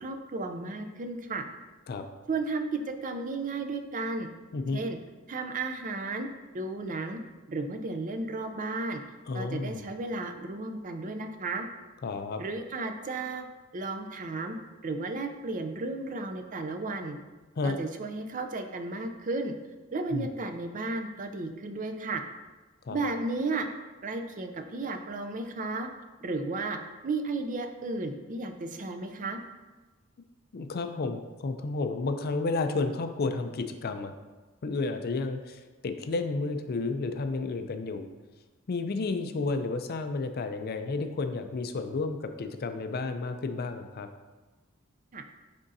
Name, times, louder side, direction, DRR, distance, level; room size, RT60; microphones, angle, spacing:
voice 1, 0.0-1.4 2.3-4.3 4.7-5.0 5.3-6.3 6.5-7.2 7.5-9.0 9.3-11.7 12.4-13.5 13.7-14.6 14.8-17.2 17.6-19.5 19.9-22.2 22.9-23.7 24.0-25.9 26.2-29.4 45.1-45.2, right 3 dB, 40° right, 6 dB, 0.5 m, -33 dB
voice 2, 9.3-9.8 12.0-12.4 17.6-17.8 20.1-20.3 22.9-23.1 30.5-34.1 34.6-38.1 38.7-44.1, left 3 dB, 45° left, 8 dB, 0.4 m, -31 dB
9.6 x 3.7 x 2.7 m, 1.2 s
head